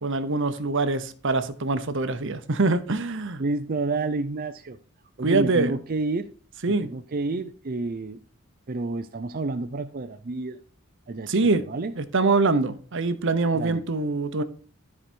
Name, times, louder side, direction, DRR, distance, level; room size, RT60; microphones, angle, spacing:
voice 1, 0.0-3.4 5.2-5.7 6.6-6.9 11.3-11.7 12.0-14.4, right 3 dB, 60° right, 0.9 m, -24 dB
voice 2, 3.4-4.8 5.2-6.3 6.7-8.2 8.7-10.6 11.1-11.9 13.5-13.8, right 3 dB, 45° right, 0.5 m, -29 dB
13.0 x 4.8 x 4.5 m
head